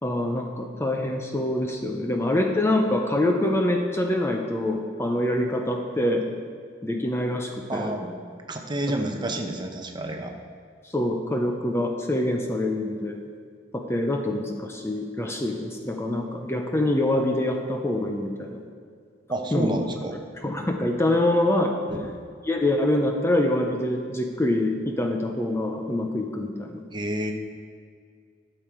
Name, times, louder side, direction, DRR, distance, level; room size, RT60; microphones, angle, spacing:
voice 1, 0.0-6.3 6.8-7.9 10.9-13.2 13.7-18.6 19.5-19.7 20.4-21.7 22.4-26.8, left 1 dB, 15° left, 2 dB, 0.6 m, -25 dB
voice 2, 7.7-8.1 8.5-10.4 19.3-20.2 21.9-22.1 26.9-27.3, right 1 dB, 25° right, 3 dB, 0.9 m, -29 dB
12.5 x 6.8 x 4.6 m, 2.1 s
head